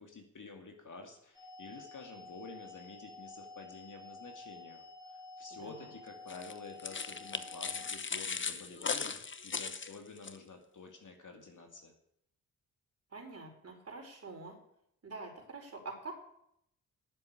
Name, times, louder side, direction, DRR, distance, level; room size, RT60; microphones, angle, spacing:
voice 1, 0.0-11.9, left 4 dB, 45° left, 3 dB, 2.6 m, -50 dB
sound 1, 1.3-7.9, left 3 dB, 10° right, 3.5 m, -51 dB
voice 2, 5.5-5.9 13.1-14.6 15.0-16.1, right 3 dB, 35° right, 1 dB, 5.0 m, -46 dB
sound 2, 6.3-10.4, left 5 dB, 30° left, 0.9 m, -38 dB
10.5 x 7.7 x 8.6 m, 0.73 s
hypercardioid pair, 45°, 42 cm